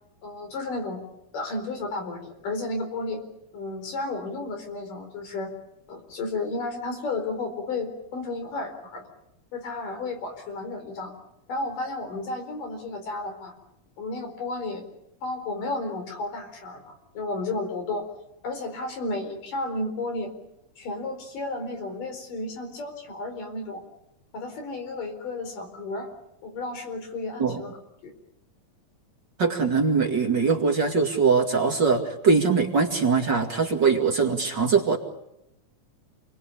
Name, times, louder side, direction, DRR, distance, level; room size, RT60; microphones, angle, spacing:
voice 1, 0.2-1.0 1.3-3.2 3.5-5.5 5.9-9.1 9.5-11.1 11.5-13.5 14.0-14.8 15.2-18.1 18.4-20.3 20.8-23.8 24.3-26.1 26.4-27.7 28.0-28.1, left 2 dB, 80° left, 5 dB, 6.0 m, -32 dB
voice 2, 29.4-35.0, right 5 dB, 35° right, 2 dB, 2.6 m, -22 dB
29.0 x 21.5 x 8.6 m, 0.85 s
omnidirectional pair, 3.8 m